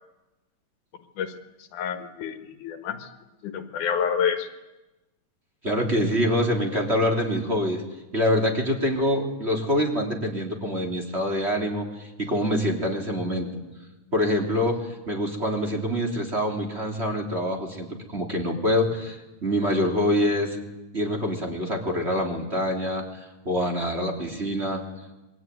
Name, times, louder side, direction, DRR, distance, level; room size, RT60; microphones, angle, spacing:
voice 1, 1.7-3.1 3.4-4.5, left 7 dB, 80° left, 9 dB, 2.9 m, -28 dB
voice 2, 5.6-7.8 8.1-13.5 14.1-20.6 20.9-24.8, equal, 20° right, 2 dB, 3.4 m, -25 dB
26.5 x 23.0 x 9.5 m, 1.1 s
omnidirectional pair, 3.5 m